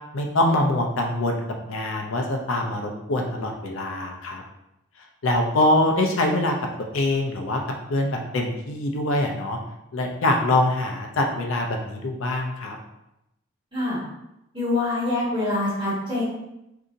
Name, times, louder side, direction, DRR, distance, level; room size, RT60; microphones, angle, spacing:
voice 1, 0.1-4.4 5.2-6.5 6.9-7.6 7.9-9.6 9.9-12.8, left 1 dB, 75° left, 2 dB, 0.5 m, -24 dB
voice 2, 14.5-16.2, left 2 dB, 25° right, -9 dB, 1.5 m, -25 dB
2.7 x 2.5 x 3.8 m, 0.87 s
head